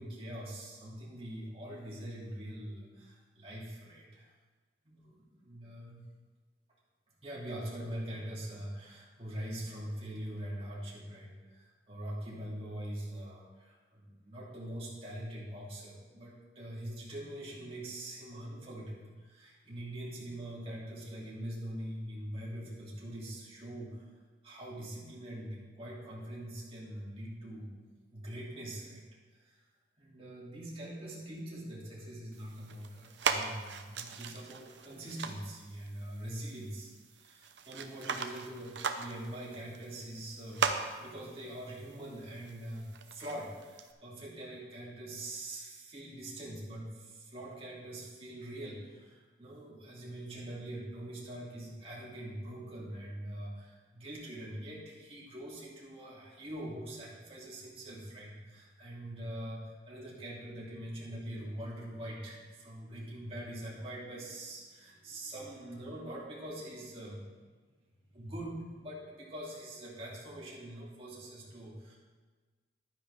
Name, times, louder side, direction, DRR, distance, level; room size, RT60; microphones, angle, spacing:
voice 1, 0.0-4.3 4.8-6.0 7.2-24.1 24.4-27.7 28.1-29.7 30.0-40.7 41.0-67.3 68.1-72.0, right 1 dB, 30° right, -6 dB, 2.7 m, -43 dB
sound 1, 32.3-43.9, right 5 dB, 70° right, 0.7 m, -39 dB
11.5 x 10.0 x 3.5 m, 1.4 s
head